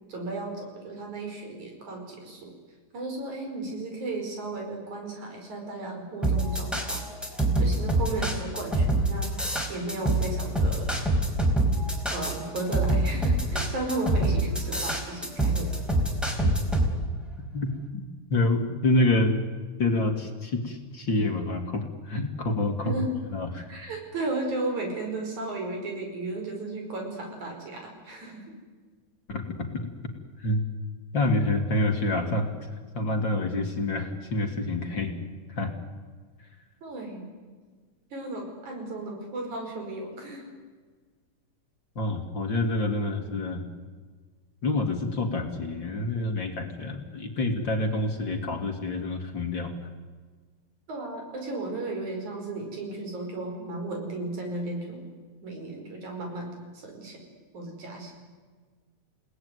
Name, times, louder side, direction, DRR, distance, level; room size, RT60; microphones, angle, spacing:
voice 1, 0.1-2.5 2.9-7.0 7.6-9.3 9.7-10.9 12.1-15.7 22.8-23.1 23.7-28.4 36.8-37.3 38.1-40.5 50.9-55.0 55.4-56.5 56.8-57.2 57.5-58.1, right 2 dB, 75° right, 2 dB, 6.8 m, -34 dB
sound 1, 6.2-16.9, right 2 dB, ahead, 4.3 m, -25 dB
voice 2, 17.5-18.0 18.3-19.3 19.8-22.9 23.3-23.7 29.3-29.7 30.4-30.6 31.1-32.5 32.9-35.1 35.5-35.7 42.0-43.6 44.6-49.7, left 2 dB, 40° left, 5 dB, 2.7 m, -27 dB
29.5 x 18.5 x 9.6 m, 1.5 s
omnidirectional pair, 3.4 m